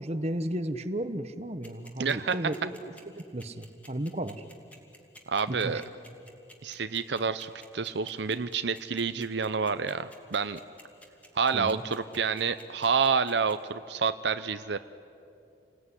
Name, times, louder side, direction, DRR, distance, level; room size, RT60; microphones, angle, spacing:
voice 1, 0.0-2.8 3.1-4.4 5.5-5.8 11.5-11.8, right 1 dB, 35° right, 10 dB, 1.1 m, -34 dB
sound 1, 1.6-13.5, left 1 dB, 10° left, 2.6 m, -51 dB
voice 2, 2.0-2.4 5.3-5.8 6.6-10.6 11.3-14.8, right 5 dB, 70° right, 11 dB, 0.7 m, -28 dB
29.5 x 20.0 x 9.8 m, 2.6 s
head